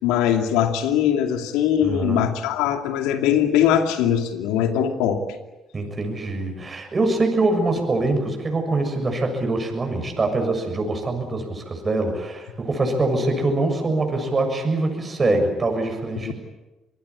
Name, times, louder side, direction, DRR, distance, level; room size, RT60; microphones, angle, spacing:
voice 1, 0.0-5.2 16.3-16.4, left 9 dB, 80° left, 6 dB, 2.6 m, -21 dB
voice 2, 1.8-2.3 5.7-16.3, right 2 dB, 35° right, 4 dB, 7.0 m, -24 dB
25.5 x 21.5 x 8.6 m, 1.1 s
hypercardioid pair, 55°, 0 cm